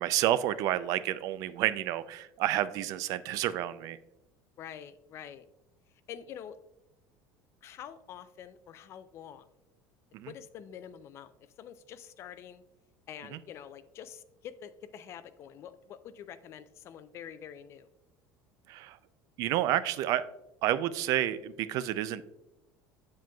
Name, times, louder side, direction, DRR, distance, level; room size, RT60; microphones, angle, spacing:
voice 1, 0.0-4.0 10.1-10.3 13.3-13.4 18.7-19.0 19.4-20.2 20.6-22.2, right 13 dB, 55° right, 15 dB, 0.3 m, -30 dB
voice 2, 4.6-5.5 6.1-6.6 7.6-9.5 10.2-12.6 13.1-17.9, left 9 dB, 40° left, 13 dB, 0.4 m, -46 dB
7.4 x 7.4 x 2.3 m, 0.89 s
cardioid pair, 155°, 7 cm